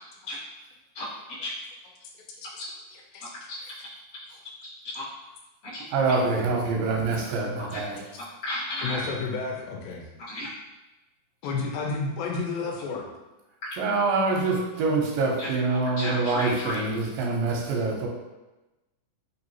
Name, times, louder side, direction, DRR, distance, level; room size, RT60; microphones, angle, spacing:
voice 1, 2.9-3.3 4.3-4.4 8.1-8.2 8.8-10.0 11.4-13.1, left 4 dB, 90° left, 0 dB, 2.3 m, -31 dB
voice 2, 5.9-8.0 13.8-18.1, right 3 dB, 85° right, -1 dB, 2.3 m, -25 dB
voice 3, 8.2-9.0 10.3-10.5 15.4-15.5 15.8-16.8, left 1 dB, 50° left, -11 dB, 0.8 m, -33 dB
5.4 x 2.6 x 2.9 m, 1.1 s
omnidirectional pair, 4.0 m